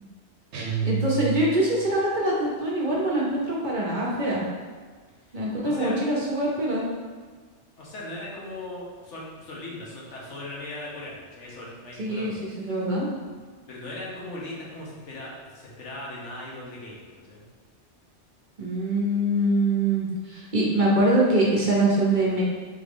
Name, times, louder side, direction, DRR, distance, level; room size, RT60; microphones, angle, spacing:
sound 1, 0.5-1.9, right 6 dB, 75° right, 1.0 m, -29 dB
voice 1, 0.8-4.4 5.3-6.8 12.0-13.1 18.6-22.4, right 1 dB, 45° right, -5 dB, 0.9 m, -24 dB
voice 2, 5.3-6.0 7.8-12.4 13.7-17.4, left 2 dB, 80° left, -4 dB, 1.3 m, -38 dB
3.7 x 3.6 x 3.5 m, 1.5 s
omnidirectional pair, 1.2 m